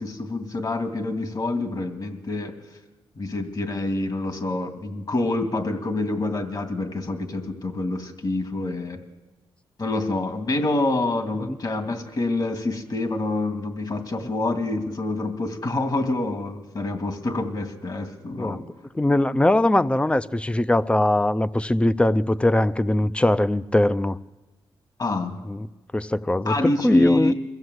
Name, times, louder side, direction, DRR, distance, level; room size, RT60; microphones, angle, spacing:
voice 1, 0.0-2.6 3.2-9.0 9.8-18.7 25.0-25.4 26.5-27.3, left 2 dB, 45° left, 2.7 m, -26 dB
voice 2, 18.9-24.2 25.5-25.7 25.9-27.3, left 1 dB, 10° left, 0.6 m, -21 dB
23.0 x 14.5 x 8.0 m
cardioid pair, 75°, 9 cm